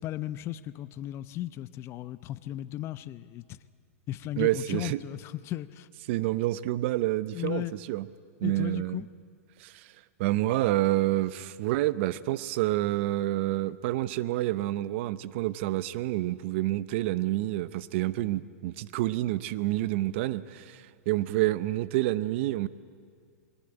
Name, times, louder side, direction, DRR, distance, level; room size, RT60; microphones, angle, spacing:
voice 1, 0.0-3.6 4.1-5.9 7.3-7.8 8.4-9.1, left 14 dB, 35° left, 0.7 m, -36 dB
voice 2, 4.4-5.0 6.1-8.1 8.4-9.0 9.6-9.9 10.2-22.7, right 16 dB, 55° right, 0.8 m, -28 dB
22.5 x 20.0 x 9.0 m
hypercardioid pair, 125°, 8 cm